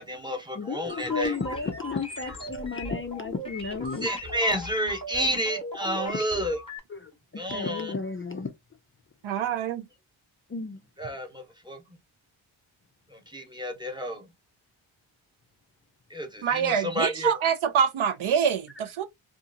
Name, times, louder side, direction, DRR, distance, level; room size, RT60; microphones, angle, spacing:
voice 1, 0.0-1.3 4.0-6.6 7.4-7.9 11.0-11.8 13.1-14.3 16.1-17.3, equal, 10° right, 0.9 m, -30 dB
voice 2, 0.5-4.1 6.0-6.2 6.9-8.5 10.5-10.8, left 4 dB, 30° left, 0.4 m, -33 dB
sound 1, 0.9-6.8, equal, 10° left, 1.0 m, -38 dB
voice 3, 9.2-9.9 16.4-19.0, right 8 dB, 75° right, 0.6 m, -25 dB
2.7 x 2.4 x 2.5 m
wide cardioid pair, 95°, 50 cm